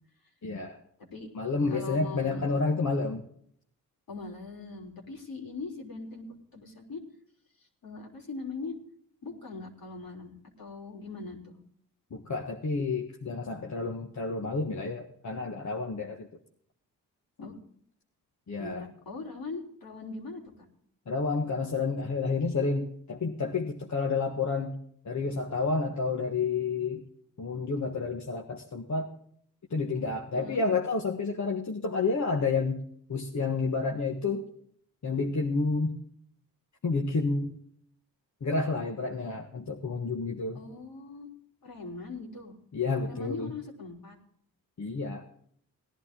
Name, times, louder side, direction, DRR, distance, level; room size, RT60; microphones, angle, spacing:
voice 1, 0.4-0.8 1.3-3.2 12.1-16.3 17.4-17.5 18.5-18.8 21.1-24.8 25.0-27.0 27.4-29.1 29.7-32.8 33.1-34.5 35.0-36.0 36.8-37.6 38.4-40.6 42.7-43.5 44.8-45.2, left 4 dB, 50° left, 2 dB, 1.6 m, -30 dB
voice 2, 1.7-2.4 4.1-6.3 6.5-7.0 7.8-8.7 9.2-11.6 17.4-17.6 18.6-20.4 30.3-30.6 40.5-41.3 41.6-42.6 43.0-44.2, left 3 dB, 65° left, 0 dB, 3.7 m, -40 dB
18.0 x 11.0 x 3.8 m, 0.64 s
cardioid pair, 60°, 37 cm